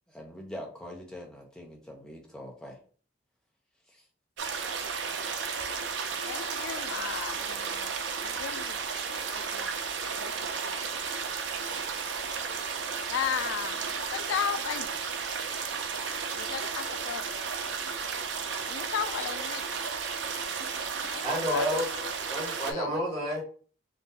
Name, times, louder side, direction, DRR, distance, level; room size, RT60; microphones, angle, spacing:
voice 1, 0.1-2.8 3.9-4.0, equal, 5° left, 0.7 m, -43 dB
sound 1, 4.4-22.7, right 5 dB, 70° right, 0.5 m, -33 dB
voice 2, 6.3-7.9 8.2-8.8 9.3-9.7 10.0-10.3 10.6-10.8 11.7-11.9 13.1-13.8 14.1-14.9 16.3-17.2 18.7-19.6 21.0-21.9 22.7-22.9, left 8 dB, 85° left, 0.3 m, -35 dB
voice 3, 21.2-21.9 22.3-23.4, equal, 25° right, 1.5 m, -30 dB
3.8 x 2.5 x 2.7 m
head